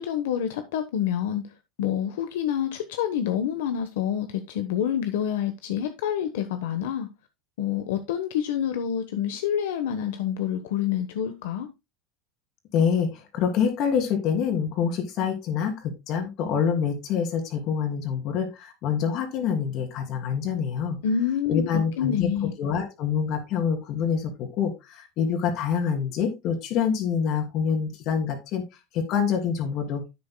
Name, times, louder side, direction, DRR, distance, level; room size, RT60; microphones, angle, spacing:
voice 1, 0.0-1.4 1.8-7.1 7.6-11.7 21.0-22.5, left 9 dB, 90° left, 1.1 m, -27 dB
voice 2, 12.7-21.0 21.5-28.6 28.9-30.0, left 7 dB, 50° left, 2.8 m, -26 dB
10.5 x 8.7 x 2.2 m
supercardioid pair, 135°, 0 cm